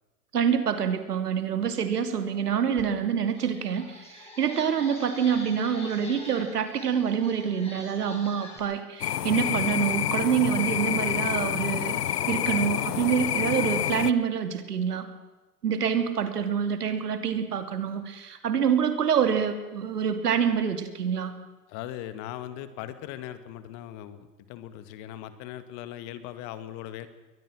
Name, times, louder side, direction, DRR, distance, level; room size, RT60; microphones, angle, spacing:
voice 1, 0.3-15.1 15.6-21.3, right 7 dB, 80° right, 8 dB, 2.9 m, -26 dB
sound 1, 2.8-2.9 3.3-8.6, left 2 dB, 15° left, 6.6 m, -45 dB
sound 2, 9.0-14.1, left 11 dB, 85° left, 0.8 m, -28 dB
voice 2, 21.7-27.1, left 12 dB, 40° left, 12 dB, 1.9 m, -39 dB
22.5 x 19.0 x 6.3 m, 1.2 s
hypercardioid pair, 120°, 46 cm